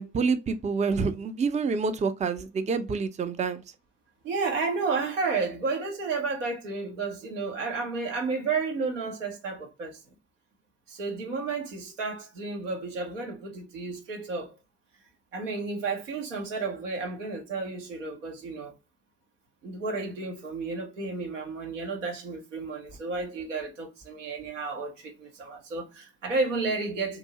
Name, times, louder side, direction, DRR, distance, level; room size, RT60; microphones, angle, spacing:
voice 1, 0.0-3.6, right 5 dB, 20° right, 0.4 m, -27 dB
voice 2, 4.2-10.0 10.9-14.5 15.3-18.7 19.6-27.2, right 4 dB, 85° right, 0.7 m, -32 dB
2.7 x 2.6 x 2.7 m
figure-of-eight pair, 45°, 36 cm